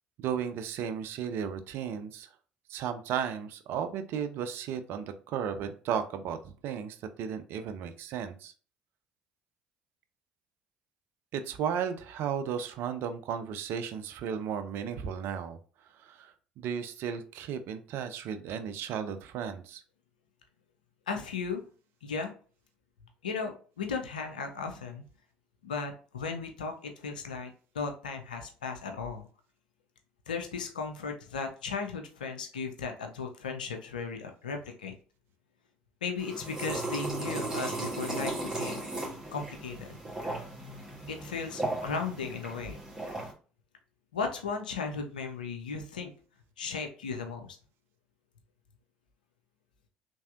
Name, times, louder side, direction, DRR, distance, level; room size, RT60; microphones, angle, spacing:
voice 1, 0.2-2.3 2.7-6.4 6.6-8.5 11.3-15.6 16.0-19.8, right 8 dB, 60° right, 9 dB, 0.4 m, -34 dB
voice 2, 21.1-21.6 22.0-22.3 23.2-25.0 25.6-29.3 30.3-34.9 36.0-38.9 39.3-40.0 41.1-42.8 44.1-46.1 46.6-47.6, left 5 dB, 85° left, 5 dB, 0.4 m, -36 dB
sound 1, 36.2-43.3, right 2 dB, 15° right, 1.4 m, -36 dB
3.2 x 2.6 x 2.4 m, 0.39 s
hypercardioid pair, 60°, 4 cm